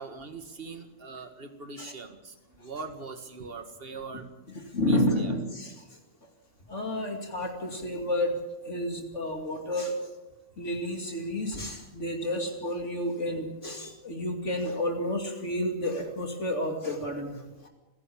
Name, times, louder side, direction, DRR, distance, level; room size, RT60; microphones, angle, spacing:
voice 1, 0.0-4.3 4.9-5.3, right 4 dB, 45° right, 8 dB, 2.0 m, -41 dB
voice 2, 4.7-5.7 6.7-8.3 8.6-10.1 10.6-17.7, left 1 dB, 60° left, 4 dB, 2.9 m, -30 dB
30.0 x 11.0 x 8.5 m, 1.0 s
omnidirectional pair, 1.4 m